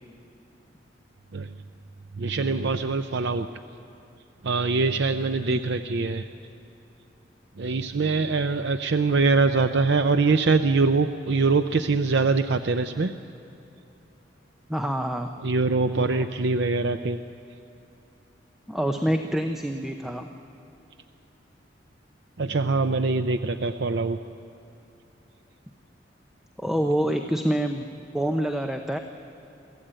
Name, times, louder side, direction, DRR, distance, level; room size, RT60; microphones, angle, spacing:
voice 1, 2.2-3.5 4.4-6.3 7.6-13.1 15.4-17.2 22.4-24.2, right 3 dB, 65° right, 9 dB, 0.6 m, -23 dB
voice 2, 14.7-15.3 16.0-16.3 18.7-20.3 26.6-29.0, right 1 dB, ahead, 5 dB, 0.7 m, -27 dB
24.0 x 15.0 x 8.9 m, 2.9 s
head